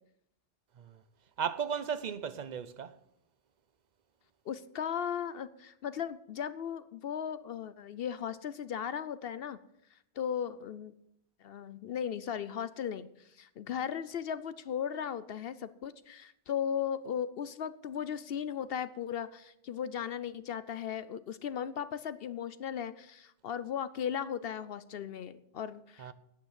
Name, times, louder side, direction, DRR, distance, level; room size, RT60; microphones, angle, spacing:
voice 1, 1.4-2.9 26.0-26.1, right 7 dB, 45° right, 0.7 m, -35 dB
voice 2, 4.5-9.6 10.2-10.9 11.4-26.1, left 8 dB, 60° left, 0.7 m, -37 dB
9.7 x 8.8 x 7.4 m
omnidirectional pair, 1.2 m